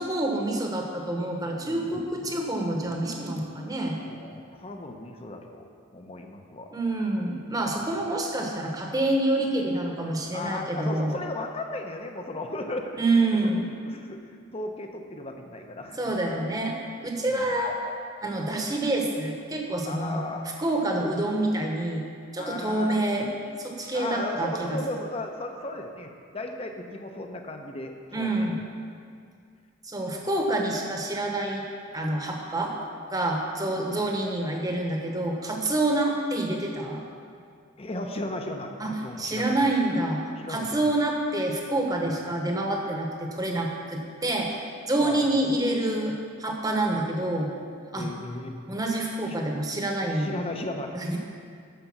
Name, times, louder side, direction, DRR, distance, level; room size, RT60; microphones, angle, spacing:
voice 1, 0.0-4.0 6.7-11.1 13.0-13.7 16.0-16.8 17.0-17.8 18.2-20.2 20.6-22.0 22.3-23.3 23.6-24.8 28.1-28.5 29.8-31.6 31.9-32.7 33.1-37.0 38.8-38.9 39.2-40.2 40.5-44.5 44.9-47.5 47.9-48.1 48.7-50.3 50.9-51.2, right 1 dB, 20° right, 1 dB, 1.1 m, -27 dB
voice 2, 1.6-1.9 4.0-6.7 7.8-8.0 10.3-13.0 13.3-13.5 13.9-16.0 17.3-17.6 19.9-20.4 22.4-23.0 23.9-28.6 30.1-30.3 37.8-39.5 40.4-40.9 45.0-45.3 47.9-48.6 49.3-49.4 50.1-51.2, left 2 dB, 30° left, 4 dB, 0.8 m, -36 dB
10.0 x 6.8 x 6.0 m, 2.2 s
head